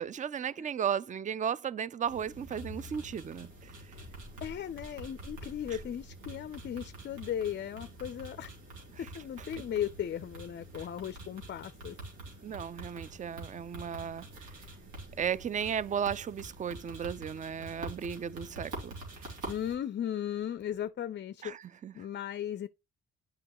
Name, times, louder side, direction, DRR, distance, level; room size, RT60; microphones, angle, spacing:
voice 1, 0.0-3.5 8.9-9.1 9.4-9.5 12.4-14.5 15.2-18.9 21.4-21.9, right 8 dB, 25° right, 0.4 m, -35 dB
sound 1, 2.1-19.7, right 1 dB, 85° right, 3.1 m, -46 dB
voice 2, 4.4-8.5 9.0-12.0 19.5-21.5 21.9-22.7, left 10 dB, 40° left, 0.4 m, -36 dB
8.5 x 5.5 x 3.0 m
cardioid pair, 90°, 30 cm